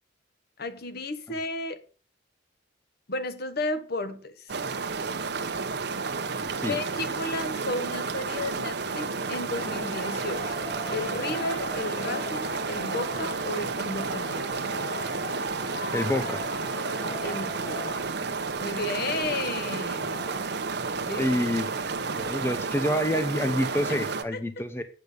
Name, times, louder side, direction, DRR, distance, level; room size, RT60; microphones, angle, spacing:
voice 1, 0.6-1.8 3.1-4.6 6.7-10.6 10.9-14.7 17.2-18.1 18.6-20.3 21.1-21.3 24.3-24.4, left 2 dB, 60° left, 1.3 m, -33 dB
sound 1, 4.5-24.2, right 4 dB, 65° right, 1.0 m, -31 dB
Male speech man speaking / Shout / Clapping, 9.5-18.0, left 1 dB, 80° left, 5.5 m, -39 dB
voice 2, 15.9-16.4 20.0-20.6 21.0-21.7 22.1-24.8, equal, 15° left, 0.9 m, -28 dB
8.8 x 6.7 x 8.1 m
head